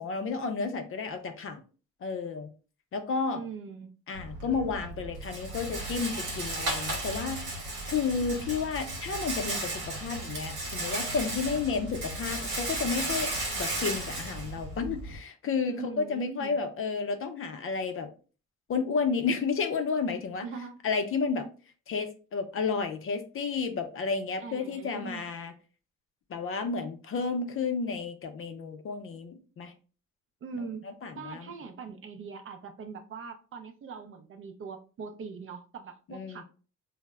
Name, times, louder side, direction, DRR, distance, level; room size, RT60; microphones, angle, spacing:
voice 1, 0.0-1.6 2.0-2.5 2.9-3.4 4.1-18.1 18.7-20.5 20.8-21.5 21.9-25.5 26.3-29.7 30.5-31.5 36.1-36.4, left 5 dB, 45° left, 7 dB, 0.5 m, -32 dB
voice 2, 3.3-3.9 15.7-16.6 20.4-20.8 24.4-25.3 30.4-30.9 31.2-36.4, right 5 dB, 45° right, 7 dB, 0.4 m, -41 dB
Rattle, 4.1-15.2, right 2 dB, 80° right, 0.9 m, -35 dB
2.0 x 2.0 x 3.4 m, 0.36 s
cardioid pair, 90°, 30 cm